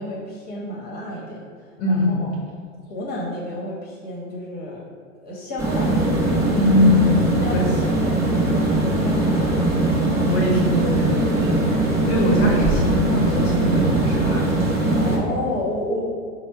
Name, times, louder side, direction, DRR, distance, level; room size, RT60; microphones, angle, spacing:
voice 1, 0.0-1.4 1.9-2.3 2.9-4.8 5.2-6.1 7.4-9.6 15.0-16.0, left 1 dB, 25° left, -3 dB, 1.3 m, -31 dB
voice 2, 1.8-2.2 6.5-7.3 7.5-7.7 10.3-14.6 14.8-15.0, left 1 dB, 50° left, -3 dB, 1.1 m, -22 dB
sound 1, 5.6-15.2, right 2 dB, 5° right, 0.9 m, -20 dB
4.4 x 2.3 x 4.6 m, 2.1 s
hypercardioid pair, 125°, 40 cm